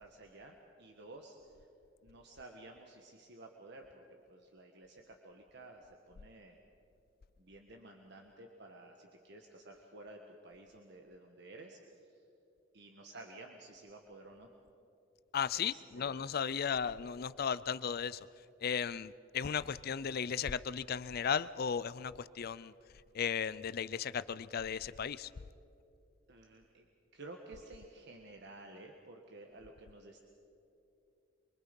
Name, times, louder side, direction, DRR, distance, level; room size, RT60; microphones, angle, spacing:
voice 1, 0.0-1.4 2.0-4.0 4.3-6.6 7.4-12.2 12.7-14.5 15.5-16.2 26.3-26.9 27.1-30.2, right 2 dB, 60° right, 2 dB, 1.5 m, -53 dB
voice 2, 15.3-18.3 18.6-22.7 23.1-25.3, left 7 dB, 50° left, 17 dB, 0.5 m, -35 dB
25.0 x 24.5 x 5.3 m, 2.7 s
head